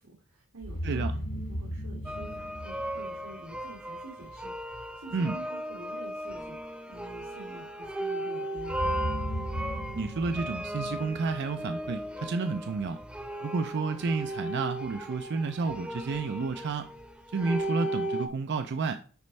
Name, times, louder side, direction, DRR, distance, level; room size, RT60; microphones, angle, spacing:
voice 1, 0.0-9.0, right 2 dB, 90° right, 2.0 m, -48 dB
sound 1, 0.6-3.6 8.6-11.8, equal, 65° left, 2.1 m, -36 dB
sound 2, 2.1-18.3, right 1 dB, 5° right, 0.7 m, -36 dB
voice 2, 9.9-13.0 13.4-16.9 17.3-19.0, right 4 dB, 55° right, 0.4 m, -31 dB
9.3 x 4.3 x 3.2 m
head